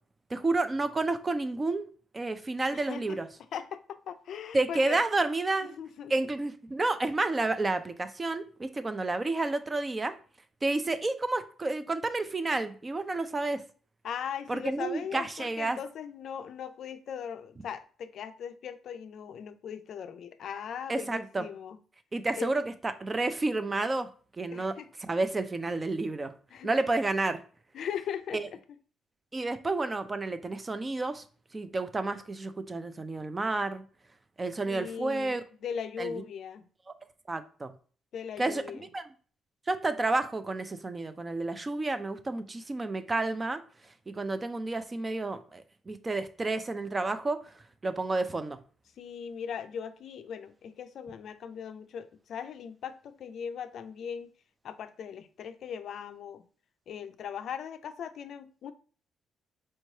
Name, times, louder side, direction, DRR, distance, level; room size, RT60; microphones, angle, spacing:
voice 1, 0.3-1.9 2.1-3.3 4.5-5.7 6.1-10.1 10.6-13.6 14.5-15.8 20.9-21.4 22.1-24.1 24.4-24.8 25.0-26.3 26.6-27.4 28.3-28.4 29.3-31.2 31.5-33.8 34.4-35.4 36.0-36.1 37.3-37.7 38.4-38.6 38.9-39.0 39.7-43.6 44.1-47.5 47.8-48.6, right 2 dB, 25° right, 0.4 m, -30 dB
voice 2, 2.7-3.2 3.5-5.0 5.7-6.1 14.0-21.8 22.3-22.6 24.5-24.9 26.5-26.7 27.7-28.4 29.4-29.5 34.7-36.6 38.1-38.9 49.0-54.3 54.6-56.5 56.9-58.7, left 8 dB, 65° left, 0.3 m, -39 dB
4.5 x 3.1 x 2.7 m
cardioid pair, 90°, 0 cm